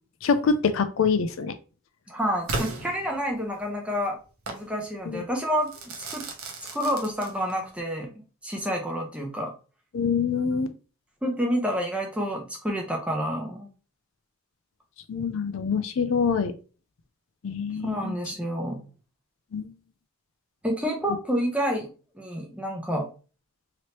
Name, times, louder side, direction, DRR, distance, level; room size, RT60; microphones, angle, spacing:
voice 1, 0.2-1.5 9.9-10.7 15.1-16.5 17.4-18.1 19.5-19.7, left 5 dB, 70° left, 9 dB, 0.4 m, -25 dB
voice 2, 2.1-4.2 4.5-5.7 6.0-6.3 6.7-9.5 11.2-13.7 17.8-18.8 20.6-23.1, equal, 5° right, 1 dB, 0.6 m, -29 dB
Crackle / Fireworks, 2.5-3.6 4.5-4.7 5.7-7.7, right 2 dB, 85° right, 0.8 m, -35 dB
3.0 x 2.9 x 2.9 m, 0.35 s
head